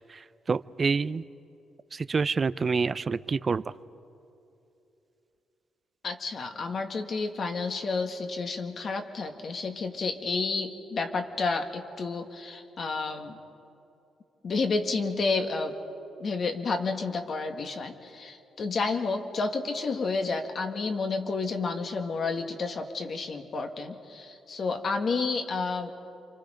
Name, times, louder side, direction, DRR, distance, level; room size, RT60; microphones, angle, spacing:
voice 1, 0.5-1.2 1.9-3.6, right 5 dB, 35° right, 16 dB, 0.5 m, -27 dB
voice 2, 6.0-13.4 14.4-15.8 16.2-25.9, left 4 dB, 50° left, 5 dB, 1.9 m, -30 dB
28.5 x 25.5 x 5.2 m, 2.8 s
cardioid pair, 95°, 0 cm